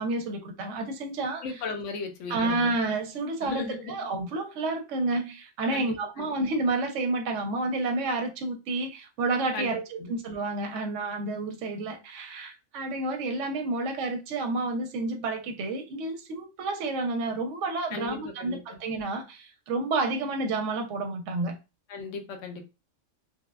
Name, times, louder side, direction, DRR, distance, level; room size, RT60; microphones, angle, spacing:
voice 1, 0.0-1.6 2.3-21.6, right 2 dB, 85° right, 0.9 m, -30 dB
voice 2, 1.4-2.6 3.4-3.9 5.7-6.3 9.5-10.1 17.9-18.8 21.9-22.6, left 4 dB, 85° left, 1.0 m, -36 dB
3.1 x 2.1 x 2.2 m
omnidirectional pair, 1.2 m